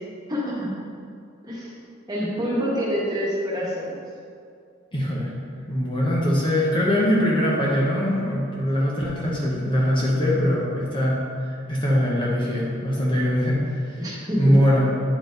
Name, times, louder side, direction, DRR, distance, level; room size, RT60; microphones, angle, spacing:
voice 1, 0.3-0.7 1.4-1.7 2.1-4.0 14.0-14.6, equal, 20° right, -6 dB, 1.6 m, -26 dB
voice 2, 4.9-5.3 5.7-11.2 11.7-14.8, equal, 25° left, -5 dB, 1.0 m, -22 dB
9.0 x 4.7 x 4.0 m, 2.3 s
head